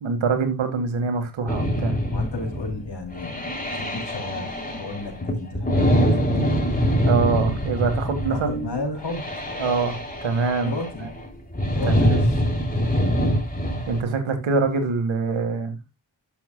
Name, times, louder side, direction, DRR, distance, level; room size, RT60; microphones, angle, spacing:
voice 1, 0.0-2.0 7.0-8.9 9.6-10.7 11.0-11.1 11.9-12.2 13.9-15.8, right 4 dB, 85° right, 2.0 m, -24 dB
sound 1, 1.5-14.0, equal, 20° left, 3.2 m, -24 dB
voice 2, 2.1-6.7 8.2-9.3 10.6-11.0 11.7-12.4, left 3 dB, 60° left, 3.4 m, -33 dB
12.0 x 6.9 x 2.3 m
cardioid pair, 45°, 46 cm